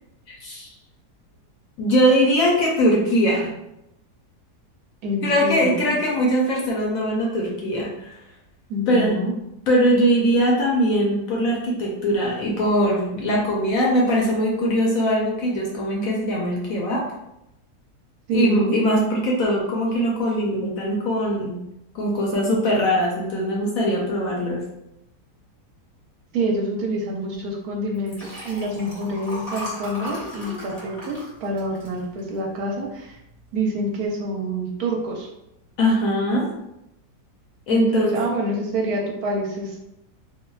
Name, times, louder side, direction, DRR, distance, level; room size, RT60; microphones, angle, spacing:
voice 1, 1.8-3.5 5.2-8.1 8.9-9.2 9.7-17.0 18.3-21.6 21.9-24.7 35.8-36.5 37.7-38.2, equal, 70° left, -2 dB, 0.9 m, -21 dB
voice 2, 5.0-5.7 8.7-9.3 18.3-18.8 26.3-33.2 33.5-35.3 37.7-39.8, right 1 dB, 70° right, 0 dB, 1.0 m, -27 dB
Liquid, 27.9-32.6 33.1-33.3 33.6-33.7, left 1 dB, 35° left, 0.6 m, -36 dB
3.3 x 2.2 x 2.3 m, 0.85 s
omnidirectional pair, 1.7 m